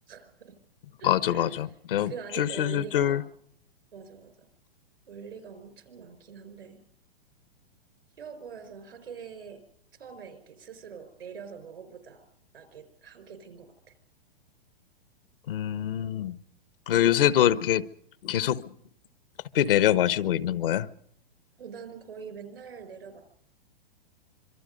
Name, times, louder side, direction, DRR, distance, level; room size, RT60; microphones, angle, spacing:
voice 1, 0.1-0.6 1.0-1.6 2.1-3.2 3.9-4.5 5.1-6.8 8.2-9.6 10.0-12.2 12.5-13.9 21.6-23.2, right 6 dB, 85° right, 10 dB, 5.0 m, -44 dB
voice 2, 1.0-2.1 2.4-3.2 15.5-16.4 16.9-17.8 18.2-18.6 19.5-20.9, left 11 dB, 70° left, 15 dB, 1.1 m, -24 dB
26.0 x 23.0 x 5.3 m, 0.68 s
hypercardioid pair, 130°, 29 cm